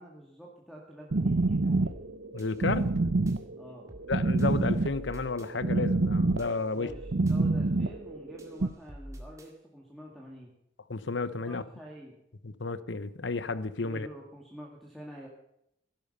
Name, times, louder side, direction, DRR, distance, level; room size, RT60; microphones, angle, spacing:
voice 1, 0.0-2.0 3.6-3.9 6.7-10.5 11.4-12.2 13.8-15.3, equal, ahead, -2 dB, 2.1 m, -47 dB
sound 1, 1.1-8.7, right 2 dB, 70° right, 0.7 m, -27 dB
sound 2, 1.9-2.1 2.4-3.4 3.9-4.1 4.4-5.5 5.9-6.1 6.4-7.4 7.9-8.1 8.4-9.5, equal, 15° right, 2.1 m, -47 dB
voice 2, 2.3-2.9 4.1-6.9 10.9-11.6 12.4-14.1, left 3 dB, 75° left, 14 dB, 0.9 m, -32 dB
16.5 x 12.0 x 5.6 m, 0.79 s
head